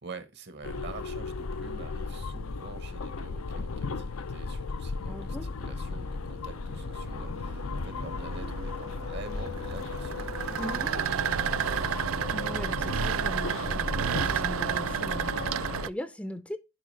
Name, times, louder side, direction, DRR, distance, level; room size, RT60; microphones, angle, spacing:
voice 1, 0.0-11.8, right 4 dB, 55° right, 1.1 m, -46 dB
sound 1, 0.6-15.9, left 4 dB, 90° left, 0.6 m, -35 dB
voice 2, 5.0-5.6 10.6-10.9 12.3-16.6, left 1 dB, 5° left, 0.5 m, -40 dB
sound 2, 6.1-15.9, right 9 dB, 75° right, 0.4 m, -32 dB
11.0 x 4.8 x 3.2 m
head